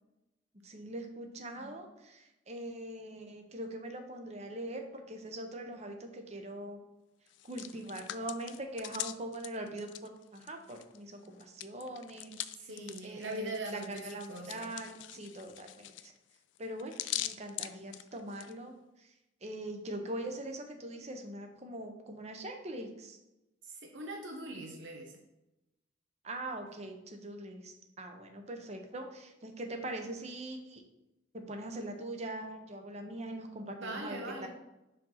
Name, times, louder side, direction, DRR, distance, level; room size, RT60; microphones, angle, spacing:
voice 1, 0.6-6.8 7.4-12.3 12.6-12.7 13.0-16.1 16.6-18.7 19.0-19.1 19.4-23.2 26.2-30.8 31.5-34.5, right 1 dB, 35° right, 5 dB, 0.8 m, -42 dB
voice 2, 1.5-1.9 12.6-14.8 23.6-25.2 33.8-34.5, right 1 dB, 80° right, 1 dB, 0.8 m, -41 dB
Hands, 7.3-11.0 11.3-18.5, left 13 dB, 75° left, 0.3 m, -43 dB
5.1 x 3.9 x 5.7 m, 0.94 s
head